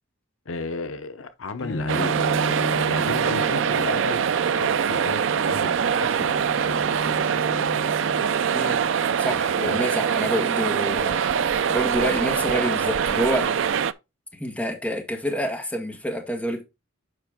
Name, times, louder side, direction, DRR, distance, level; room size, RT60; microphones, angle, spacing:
voice 1, 0.5-2.2 2.8-7.1 9.3-9.8, left 3 dB, 85° left, 0.8 m, -34 dB
Bowed string instrument, 1.6-8.6, equal, 55° left, 1.3 m, -34 dB
sound 1, 1.9-13.9, right 7 dB, 70° right, 0.4 m, -23 dB
voice 2, 9.2-13.5 14.3-16.6, equal, 5° left, 1.6 m, -28 dB
7.8 x 5.3 x 3.6 m
head